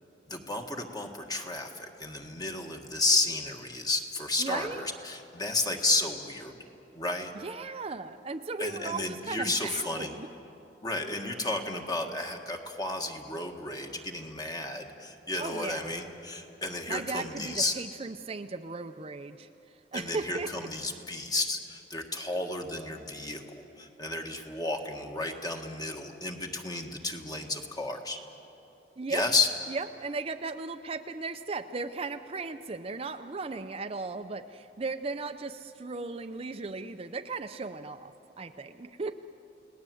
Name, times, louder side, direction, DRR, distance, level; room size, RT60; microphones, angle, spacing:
voice 1, 0.3-6.6 7.0-7.3 8.6-10.2 10.8-17.7 19.9-28.2 29.1-29.5, left 2 dB, 25° left, 3 dB, 1.7 m, -32 dB
voice 2, 4.4-4.8 7.3-10.3 15.4-15.9 16.9-19.5 19.9-20.7 29.0-29.3 29.7-38.1 38.4-39.1, right 3 dB, 35° right, 8 dB, 0.6 m, -36 dB
30.0 x 19.0 x 7.8 m, 2.9 s
head